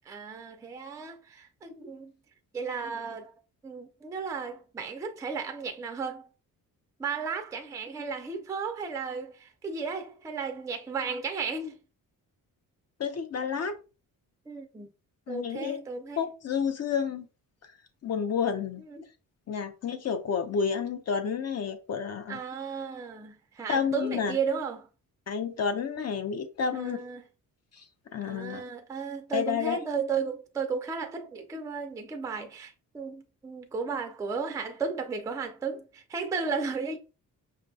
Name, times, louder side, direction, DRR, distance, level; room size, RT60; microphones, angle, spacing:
voice 1, 0.1-2.1 2.5-3.3 3.6-6.3 7.0-11.8 14.5-14.9 15.3-16.2 18.9-19.0 22.3-24.9 26.7-27.2 28.2-37.0, right 5 dB, 10° right, 0.3 m, -34 dB
voice 2, 13.0-13.8 15.3-15.8 16.2-17.3 18.0-18.8 19.5-22.4 23.7-24.4 25.3-27.0 27.7-27.9 28.1-28.6 29.3-29.8, left 6 dB, 45° left, 0.5 m, -30 dB
5.3 x 2.2 x 2.6 m
wide cardioid pair, 145°, 35 cm